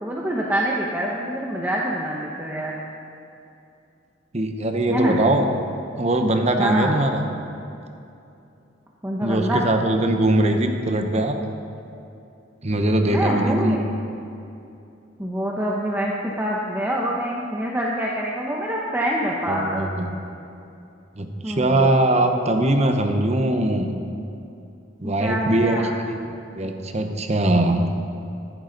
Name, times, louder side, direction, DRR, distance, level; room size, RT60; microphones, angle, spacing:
voice 1, 0.0-2.7 4.9-5.2 6.6-6.9 9.0-9.7 13.1-13.9 15.2-19.9 21.4-21.9 25.0-25.9, equal, 10° right, -3 dB, 0.8 m, -25 dB
voice 2, 4.3-5.5 6.0-7.2 9.2-11.4 12.6-13.7 19.5-20.1 21.2-23.9 25.0-25.8 26.1-27.9, right 1 dB, 35° right, 5 dB, 0.9 m, -21 dB
14.0 x 11.0 x 4.0 m, 2.7 s
head